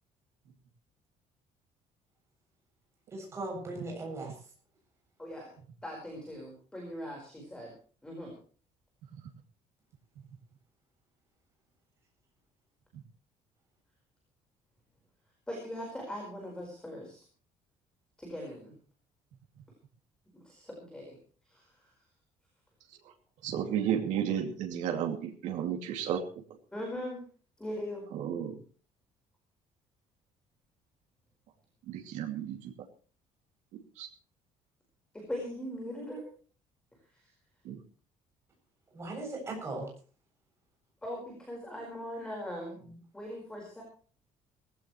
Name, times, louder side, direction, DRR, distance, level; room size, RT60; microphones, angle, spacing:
voice 1, 3.1-4.3 38.9-39.9, right 2 dB, 20° right, 0 dB, 7.7 m, -38 dB
voice 2, 5.2-5.5 5.8-7.7 8.0-8.4 15.5-17.2 18.2-18.7 20.4-21.2 21.5-21.9 26.7-27.2 27.6-28.0 35.1-36.3 37.1-37.3 39.2-39.3 41.0-42.8 43.1-43.8, equal, 5° left, 0 dB, 4.7 m, -40 dB
voice 3, 23.4-26.2 28.1-28.6 31.9-32.7 34.0-34.1 37.6-37.8, right 9 dB, 75° right, 2 dB, 2.6 m, -32 dB
19.0 x 16.5 x 3.2 m, 0.40 s
cardioid pair, 180°, 13 cm